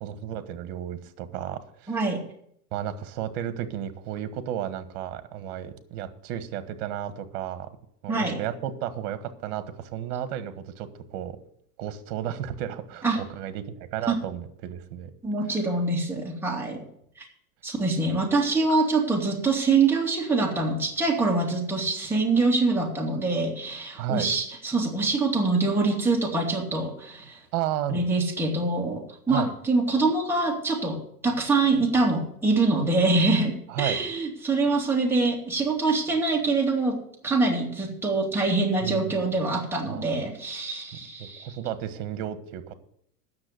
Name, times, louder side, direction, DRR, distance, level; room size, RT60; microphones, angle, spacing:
voice 1, 0.0-2.0 2.7-7.7 8.0-11.4 11.8-15.1 24.0-24.3 27.5-28.1 29.3-29.5 33.7-34.0 38.8-39.3 39.9-40.2 41.2-42.7, right 10 dB, 60° right, 11 dB, 1.5 m, -33 dB
voice 2, 1.9-2.2 8.1-8.4 13.0-13.2 14.1-14.2 15.2-16.8 17.6-27.4 27.9-37.0 37.2-41.5, right 3 dB, 5° right, -2 dB, 2.5 m, -24 dB
9.7 x 7.0 x 8.0 m, 0.68 s
supercardioid pair, 130°, 43 cm